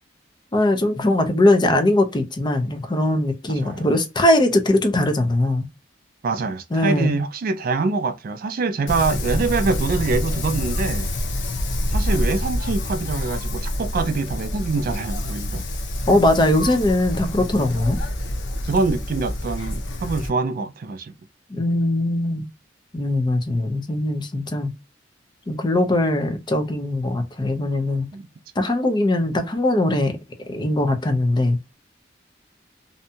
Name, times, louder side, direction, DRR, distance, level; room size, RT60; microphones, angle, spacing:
voice 1, 0.5-5.6 6.7-7.2 16.1-18.0 21.5-22.4 22.9-24.7 25.5-28.1 28.6-30.2 30.5-31.6, left 1 dB, 25° left, 0.5 m, -20 dB
voice 2, 3.5-3.9 6.2-11.1 11.9-15.7 18.7-21.1 28.1-28.2, right 4 dB, 50° right, 0.3 m, -25 dB
Wind, 8.9-20.3, left 1 dB, 85° left, 0.7 m, -27 dB
2.6 x 2.2 x 2.6 m
head